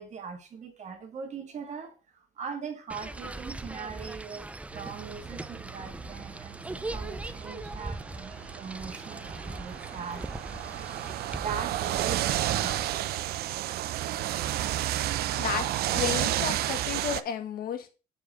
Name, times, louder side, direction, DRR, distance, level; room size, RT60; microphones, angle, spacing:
voice 1, 0.0-4.5 4.7-11.0 11.3-12.8, right 6 dB, 45° right, 1.6 m, -41 dB
sound 1, 2.9-12.9, right 2 dB, 10° right, 0.3 m, -40 dB
sound 2, 4.7-17.2, right 13 dB, 65° right, 0.5 m, -32 dB
voice 2, 15.4-17.9, left 8 dB, 60° left, 1.3 m, -33 dB
6.9 x 5.0 x 4.2 m
cardioid pair, 110°, 17 cm